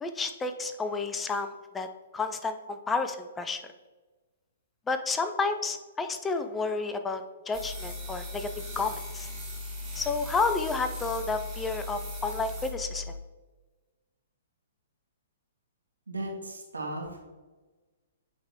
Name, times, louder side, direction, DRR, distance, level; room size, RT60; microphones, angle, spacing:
voice 1, 0.0-1.9 2.1-3.6 4.9-9.3 10.0-13.0, left 4 dB, 15° left, 8 dB, 0.4 m, -31 dB
sound 1, 7.5-13.2, left 2 dB, 5° right, 1.7 m, -38 dB
voice 2, 16.1-17.2, right 1 dB, 80° right, 0 dB, 1.6 m, -36 dB
8.6 x 3.5 x 3.5 m, 1.2 s
figure-of-eight pair, 120°, 0 cm